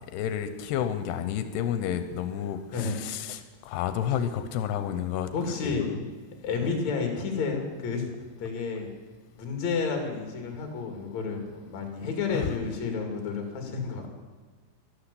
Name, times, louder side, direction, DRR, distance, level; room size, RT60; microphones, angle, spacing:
voice 1, 0.1-5.3 5.6-5.7 6.6-6.7 12.3-12.5, left 9 dB, 90° left, 9 dB, 2.9 m, -30 dB
voice 2, 5.3-6.1 6.4-8.9 9.4-14.1, left 4 dB, 50° left, 3 dB, 3.2 m, -31 dB
12.5 x 12.0 x 8.3 m, 1.4 s
omnidirectional pair, 4.7 m